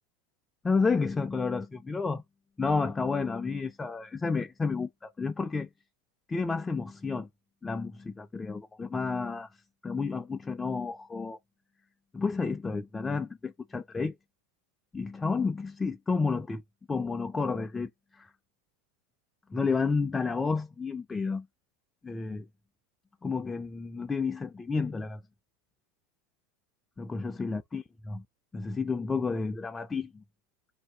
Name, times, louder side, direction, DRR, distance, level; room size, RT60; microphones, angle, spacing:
voice 1, 0.6-2.2 2.6-5.7 6.3-7.3 7.6-9.5 9.8-11.4 12.1-14.1 14.9-16.6 16.9-18.3 19.5-21.5 22.0-22.5 23.2-25.2 27.0-28.2 28.5-30.2, left 4 dB, 15° left, 0.3 m, -31 dB
2.6 x 2.2 x 3.2 m
figure-of-eight pair, 80°, 0 cm